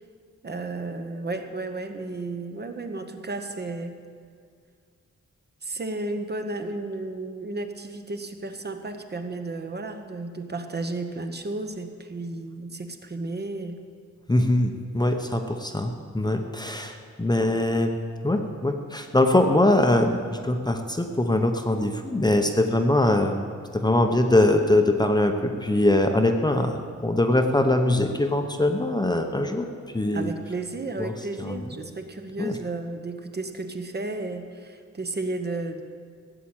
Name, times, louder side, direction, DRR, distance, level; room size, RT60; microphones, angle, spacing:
voice 1, 0.4-4.0 5.6-13.8 30.1-35.8, right 2 dB, 35° right, 6 dB, 0.9 m, -33 dB
voice 2, 14.3-18.0 18.2-23.4 23.7-26.7 27.0-29.7 29.9-30.3 31.0-31.1 31.4-31.6 32.4-32.6, left 1 dB, 15° left, 5 dB, 0.7 m, -22 dB
16.0 x 7.5 x 8.8 m, 2.2 s
wide cardioid pair, 175°, 29 cm